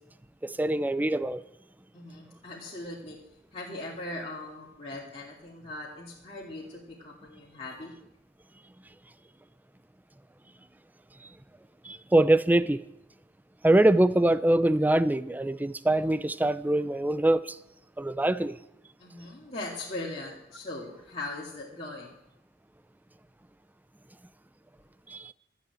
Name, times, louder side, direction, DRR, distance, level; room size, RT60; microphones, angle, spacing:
voice 1, 0.4-1.4 11.8-12.8 13.6-17.6 18.0-18.6 25.1-25.3, right 1 dB, 10° right, 0.4 m, -24 dB
voice 2, 1.9-3.2 3.5-7.9 19.0-22.2, left 2 dB, 35° left, 2.3 m, -40 dB
13.0 x 8.2 x 8.1 m
head